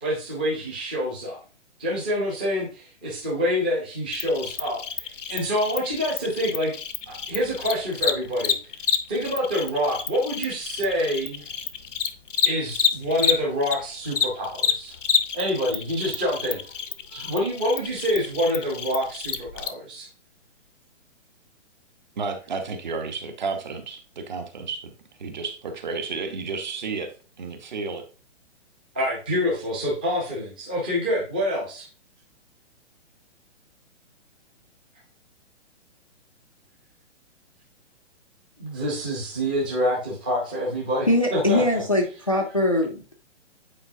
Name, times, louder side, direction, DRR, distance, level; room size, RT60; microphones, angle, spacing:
voice 1, 0.0-1.4 1.8-6.8 7.1-8.5 9.1-11.4 12.5-15.0 15.3-16.6 17.1-20.1 28.9-31.9 38.6-41.8, equal, 10° right, -5 dB, 0.7 m, -26 dB
Cricket, 4.1-13.8 14.1-19.7, left 7 dB, 90° left, 0.9 m, -28 dB
voice 2, 22.2-24.9 25.2-27.1 27.4-28.0, right 4 dB, 40° right, 6 dB, 1.0 m, -32 dB
voice 3, 41.1-43.1, left 1 dB, 30° left, 2 dB, 0.4 m, -22 dB
8.7 x 4.4 x 2.7 m, 0.36 s
hypercardioid pair, 180°, 36 cm